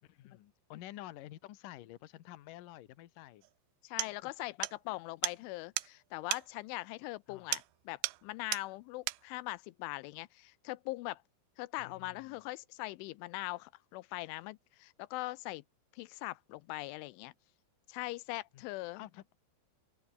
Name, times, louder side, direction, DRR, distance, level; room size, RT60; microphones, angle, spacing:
voice 1, 0.0-3.5 4.0-4.3 4.9-5.0 7.3-7.6 11.8-12.5 18.5-18.6 19.0-19.2, left 15 dB, 65° left, 2.2 m, -50 dB
sound 1, 3.4-3.5 4.0-4.2 4.6-4.8 5.2-5.4 5.8-5.9 6.3-6.5 7.5-7.7 8.0-8.3 8.5-8.7 9.1-9.2, right 19 dB, 80° right, 3.0 m, -35 dB
voice 2, 3.8-11.2 11.6-15.6 15.9-17.3 17.9-19.0, left 21 dB, 90° left, 3.2 m, -41 dB
open air
omnidirectional pair, 5.4 m